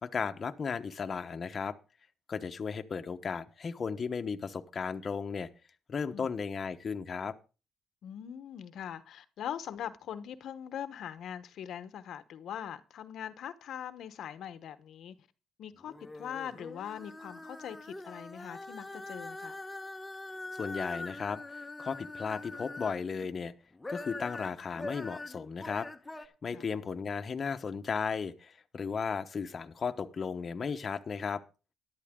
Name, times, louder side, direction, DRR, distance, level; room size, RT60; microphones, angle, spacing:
voice 1, 0.0-1.8 2.3-5.5 5.9-7.4 20.5-23.5 23.9-25.9 26.2-31.4, left 5 dB, 40° left, 1.0 m, -35 dB
voice 2, 8.0-15.1 15.6-19.5 26.5-26.6, left 9 dB, 70° left, 1.0 m, -42 dB
sound 1, 15.8-23.3 23.7-26.3, left 2 dB, 15° left, 1.2 m, -43 dB
13.5 x 11.5 x 3.7 m
cardioid pair, 90°, 0 cm